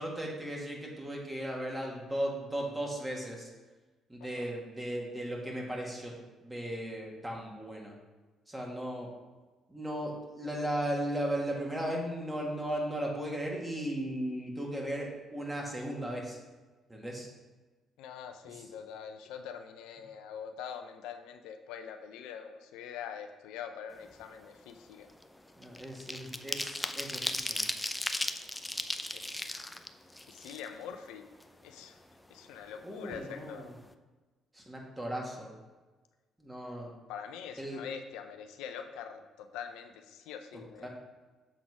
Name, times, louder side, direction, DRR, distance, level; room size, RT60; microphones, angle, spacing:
voice 1, 0.0-3.5 4.1-6.1 6.4-7.9 8.5-9.1 9.7-16.4 16.9-17.3 25.6-27.7 32.8-33.7 34.5-35.5 36.4-36.9 37.6-37.8 40.8-40.9, right 1 dB, 15° right, -1 dB, 1.9 m, -36 dB
voice 2, 18.0-25.1 29.1-29.3 30.3-31.2 31.6-32.0 32.3-33.7 37.1-40.9, left 8 dB, 85° left, 6 dB, 0.5 m, -44 dB
sound 1, 24.0-24.3 24.6-31.0 31.4-31.5 31.8-32.8 33.1-33.2 33.5-33.8, left 1 dB, 10° left, 0.5 m, -37 dB
7.3 x 4.0 x 4.9 m, 1.3 s
supercardioid pair, 65°, 0 cm